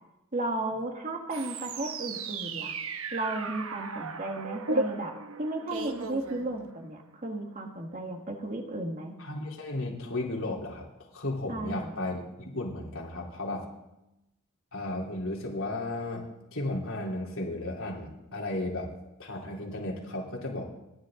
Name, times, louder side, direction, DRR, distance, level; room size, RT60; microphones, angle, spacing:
voice 1, 0.3-2.8 3.1-5.1 5.4-9.1 11.5-11.9, right 2 dB, 35° right, 3 dB, 1.8 m, -34 dB
sound 1, 1.3-7.0, right 3 dB, 65° right, 1.0 m, -35 dB
voice 2, 9.2-13.6 14.7-16.3 16.5-18.9 19.2-20.7, left 2 dB, 65° left, -2 dB, 3.8 m, -34 dB
28.5 x 11.0 x 3.9 m, 0.95 s
head